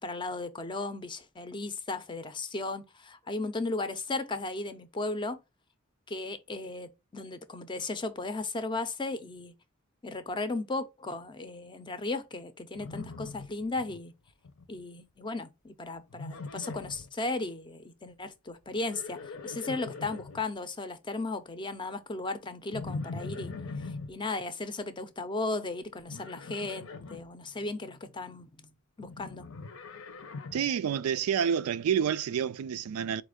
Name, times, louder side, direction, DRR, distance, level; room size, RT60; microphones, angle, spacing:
voice 1, 0.0-5.4 6.1-9.5 10.0-14.1 14.7-23.5 23.8-28.7 29.0-29.5, left 3 dB, 20° left, 0.5 m, -36 dB
Livestock farm animals working animals, 12.7-14.0 14.3-14.8 16.1-17.1 18.7-20.4 22.7-24.1 26.1-27.2 29.0-30.7, left 3 dB, 70° left, 0.7 m, -41 dB
voice 2, 30.5-33.2, right 8 dB, 85° right, 0.3 m, -28 dB
4.4 x 2.5 x 4.8 m
head